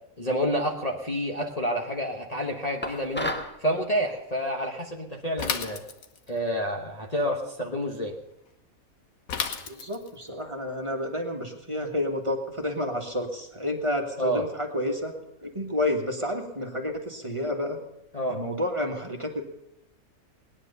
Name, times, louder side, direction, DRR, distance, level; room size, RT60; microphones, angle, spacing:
voice 1, 0.2-3.3 3.6-5.8 6.3-8.2 14.2-14.4 18.1-18.4, equal, 30° left, -1 dB, 1.2 m, -28 dB
sound 1, 2.8-3.6, left 1 dB, 10° left, 1.2 m, -31 dB
Bicycle / Mechanisms, 5.4-6.4 9.3-10.2, left 6 dB, 75° left, 1.5 m, -32 dB
voice 2, 9.7-15.1 15.4-17.8 18.3-19.4, left 1 dB, 20° right, 2 dB, 1.7 m, -30 dB
19.0 x 10.0 x 6.8 m, 0.83 s
omnidirectional pair, 1.5 m